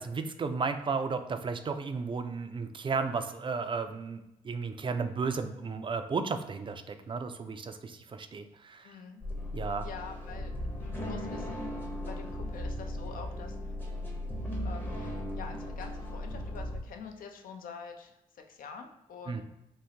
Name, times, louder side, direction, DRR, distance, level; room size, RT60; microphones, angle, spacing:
voice 1, 0.0-8.9 9.5-9.8 19.3-19.4, right 4 dB, 35° right, 8 dB, 0.4 m, -34 dB
voice 2, 8.8-9.2 9.6-10.5 10.8-11.7 12.1-13.7 14.6-19.4, left 6 dB, 65° left, 5 dB, 0.5 m, -46 dB
sound 1, 9.2-16.8, left 1 dB, 10° left, 0.7 m, -37 dB
3.7 x 2.0 x 2.8 m, 0.90 s
supercardioid pair, 50°, 16 cm